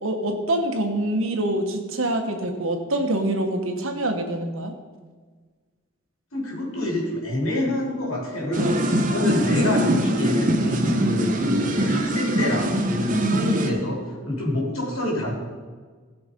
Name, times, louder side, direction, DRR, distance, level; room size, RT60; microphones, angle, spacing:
voice 1, 0.0-4.7 9.2-9.4 10.9-11.3 13.1-13.8, right 1 dB, 75° right, 4 dB, 1.4 m, -25 dB
voice 2, 6.3-14.0 14.2-15.3, left 1 dB, 80° left, -3 dB, 3.7 m, -27 dB
sound 1, 8.5-13.7, equal, 40° right, 0.9 m, -23 dB
16.0 x 6.0 x 5.3 m, 1.5 s
head